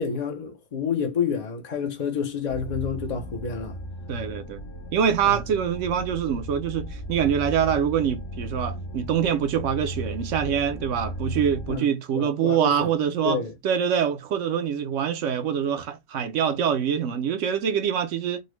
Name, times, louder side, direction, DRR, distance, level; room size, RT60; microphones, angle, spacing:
voice 1, 0.0-3.7 5.2-5.4 11.7-11.9 12.1-12.9 13.2-13.5, left 6 dB, 50° left, 0.5 m, -28 dB
sound 1, 2.5-11.8, equal, 65° left, 1.2 m, -36 dB
voice 2, 4.1-4.6 4.9-18.4, right 8 dB, 70° right, 0.9 m, -25 dB
3.9 x 2.1 x 3.1 m
omnidirectional pair, 1.4 m